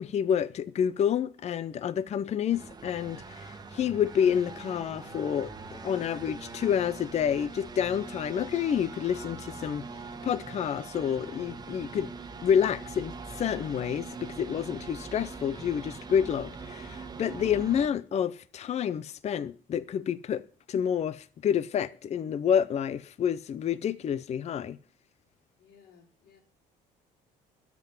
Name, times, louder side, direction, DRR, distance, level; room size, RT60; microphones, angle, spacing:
voice 1, 0.0-9.9 10.2-12.1 12.4-24.8, left 8 dB, 40° left, 0.6 m, -29 dB
sound 1, 2.5-17.9, right 4 dB, 25° right, 1.4 m, -42 dB
voice 2, 25.6-26.4, left 6 dB, 70° left, 4.1 m, -58 dB
13.0 x 6.1 x 9.0 m
cardioid pair, 110°, 17 cm